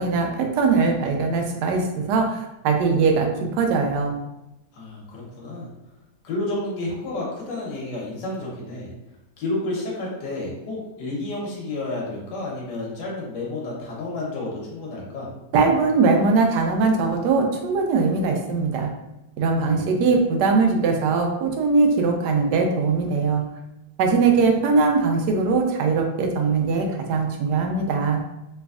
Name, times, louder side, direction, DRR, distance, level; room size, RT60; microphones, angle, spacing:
voice 1, 0.0-3.3 3.5-4.1 15.5-18.9 19.4-23.4 24.0-28.2, right 4 dB, 90° right, 2 dB, 1.2 m, -21 dB
voice 2, 4.7-5.7 6.2-8.9 9.4-15.3 19.6-20.0 24.3-24.5, left 2 dB, 85° left, -3 dB, 1.5 m, -31 dB
3.3 x 3.1 x 2.3 m, 0.92 s
omnidirectional pair, 1.8 m